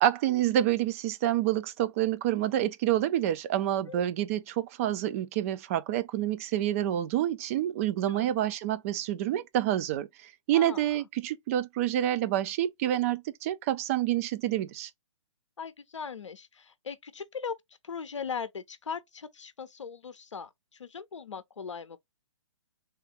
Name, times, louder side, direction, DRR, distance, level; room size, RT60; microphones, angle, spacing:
voice 1, 0.0-14.9, right 12 dB, 30° right, 0.4 m, -28 dB
voice 2, 15.6-17.6 17.8-20.5 20.8-22.0, left 6 dB, 75° left, 0.6 m, -39 dB
3.5 x 2.4 x 2.7 m
figure-of-eight pair, 125°, 16 cm